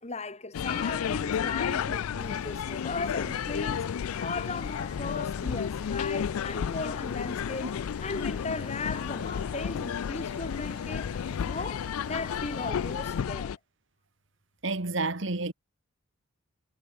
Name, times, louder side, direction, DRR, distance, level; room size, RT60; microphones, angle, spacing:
voice 1, 0.0-3.9 4.2-13.5, left 3 dB, 30° left, 1.7 m, -37 dB
sound 1, 0.5-13.6, left 8 dB, 85° left, 0.4 m, -32 dB
sound 2, 2.2-13.3, right 1 dB, 5° right, 2.7 m, -53 dB
voice 2, 14.6-15.5, right 3 dB, 60° right, 1.7 m, -29 dB
head